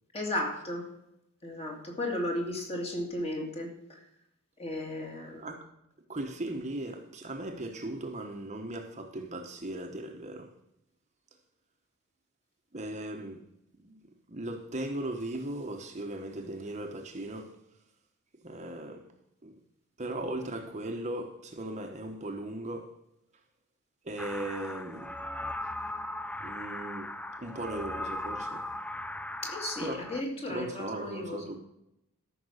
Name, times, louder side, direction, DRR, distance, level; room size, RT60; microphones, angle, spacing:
voice 1, 0.1-0.9 1.4-4.0 4.6-5.5 29.4-31.5, left 1 dB, 25° left, 2.4 m, -35 dB
voice 2, 6.1-10.5 12.7-13.4 13.8-14.0 14.3-17.5 18.4-19.1 19.4-19.5 20.0-22.9 24.0-25.1 26.4-27.1 27.4-28.7 29.8-30.0 30.5-31.6, right 1 dB, 30° right, 1.0 m, -38 dB
sound 1, 24.2-30.2, left 1 dB, 5° left, 0.4 m, -38 dB
13.5 x 5.9 x 6.5 m
head